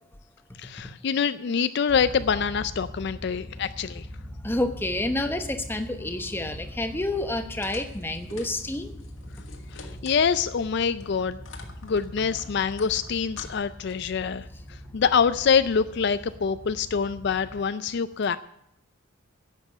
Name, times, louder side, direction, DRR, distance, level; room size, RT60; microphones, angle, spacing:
voice 1, 0.6-4.1 9.7-11.4 11.8-18.4, left 6 dB, 55° left, 13 dB, 0.4 m, -25 dB
sound 1, 1.9-17.6, equal, 15° right, 2.7 m, -42 dB
voice 2, 4.4-8.9, left 1 dB, 10° left, 7 dB, 0.9 m, -29 dB
sound 2, 7.6-10.6 11.0-14.2, left 4 dB, 75° left, 1.9 m, -46 dB
11.0 x 7.6 x 9.3 m, 0.78 s
head